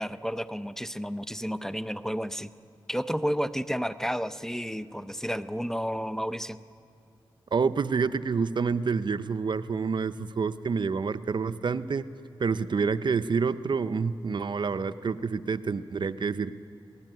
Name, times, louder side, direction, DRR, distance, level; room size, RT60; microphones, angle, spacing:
voice 1, 0.0-2.5 2.9-6.6, equal, 5° left, 12 dB, 0.6 m, -31 dB
voice 2, 7.5-12.0 12.4-16.6, right 5 dB, 55° right, 13 dB, 0.6 m, -28 dB
21.5 x 17.0 x 9.1 m, 2.4 s
cardioid pair, 70°, 9 cm